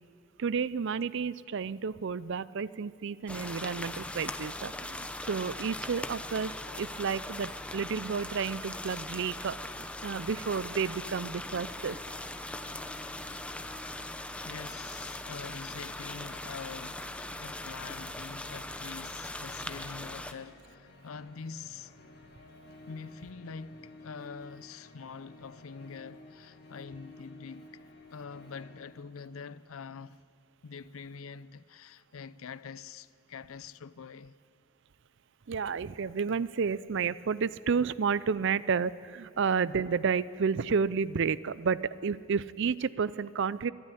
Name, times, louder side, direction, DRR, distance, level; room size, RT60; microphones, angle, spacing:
voice 1, 0.4-12.2 35.5-43.7, right 5 dB, 60° right, 0.5 m, -31 dB
sound 1, 3.3-20.3, left 1 dB, 5° left, 0.7 m, -40 dB
sound 2, 11.6-28.8, left 2 dB, 50° left, 2.2 m, -54 dB
voice 2, 14.4-21.9 22.9-27.7 28.1-30.2 30.6-34.4, left 5 dB, 80° left, 0.5 m, -45 dB
22.5 x 12.0 x 9.9 m
head